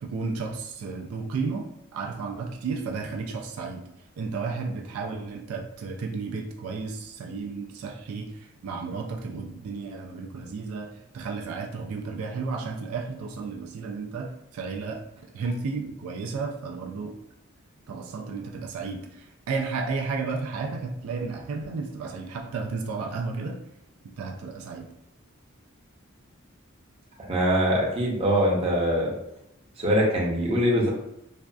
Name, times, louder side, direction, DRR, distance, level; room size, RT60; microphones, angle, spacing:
voice 1, 0.0-3.8 4.2-15.0 15.3-17.2 17.9-23.6 24.2-24.9, right 4 dB, 85° right, 1 dB, 0.3 m, -33 dB
voice 2, 27.3-29.1 29.8-30.9, equal, 30° right, -4 dB, 0.5 m, -23 dB
2.5 x 2.2 x 2.2 m, 0.84 s
head